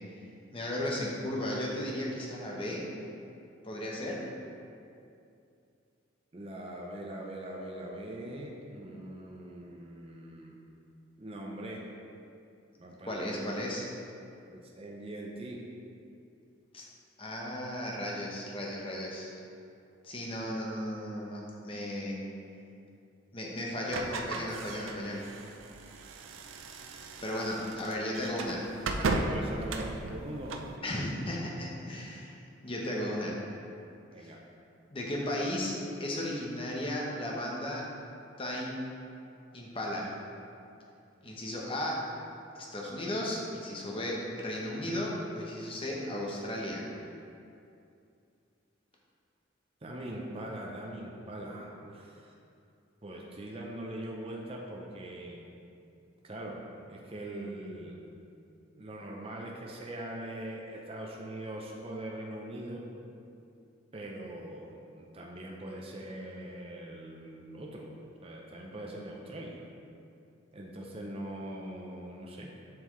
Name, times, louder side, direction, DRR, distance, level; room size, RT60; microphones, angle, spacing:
voice 1, 0.5-2.9 3.6-4.3 13.1-13.9 16.7-16.9 17.2-19.3 20.0-22.3 23.3-25.2 27.2-28.7 30.8-33.4 34.2-34.3 34.9-37.9 38.4-39.0 39.5-40.2 41.2-42.1 42.5-46.9, left 1 dB, 25° left, -2 dB, 0.9 m, -35 dB
voice 2, 6.3-10.6 11.2-11.9 12.8-13.5 14.5-15.6 29.0-30.6 34.1-34.4 49.8-52.3 53.0-55.4 56.2-56.6 56.9-58.0 58.7-62.8 63.9-67.9 68.2-69.6 70.5-72.5, right 1 dB, 30° right, -1 dB, 0.6 m, -42 dB
sound 1, 23.9-30.7, right 2 dB, 90° right, 0.5 m, -36 dB
7.6 x 5.6 x 3.1 m, 2.6 s
head